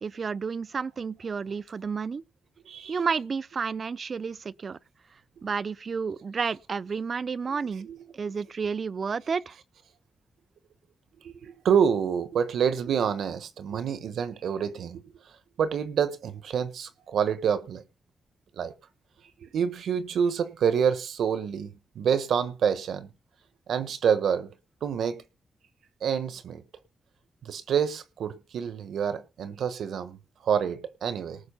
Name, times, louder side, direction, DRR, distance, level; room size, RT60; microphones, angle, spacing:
voice 1, 0.0-2.2 2.9-4.8 5.4-7.9 8.1-9.5, right 5 dB, 60° right, 0.5 m, -31 dB
voice 2, 2.7-3.0 7.5-7.6 7.8-8.0 11.2-15.0 15.6-17.8 18.6-18.7 19.4-23.1 23.7-24.5 24.8-25.2 26.0-26.6 27.4-31.4, right 7 dB, 90° right, 1.2 m, -27 dB
19.0 x 6.3 x 5.5 m
cardioid pair, 60°, 0 cm